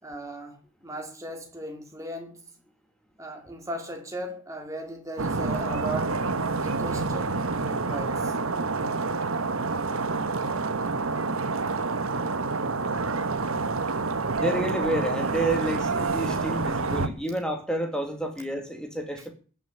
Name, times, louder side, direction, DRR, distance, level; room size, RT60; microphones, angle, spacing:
voice 1, 0.0-2.4 3.2-6.2 6.5-7.3 7.6-8.3 10.3-10.5 12.1-12.6, right 1 dB, 15° right, 2.4 m, -37 dB
sound 1, 5.2-17.1, right 3 dB, 85° right, 1.2 m, -28 dB
voice 2, 14.4-19.3, right 1 dB, 5° left, 2.1 m, -29 dB
15.0 x 6.3 x 10.0 m
head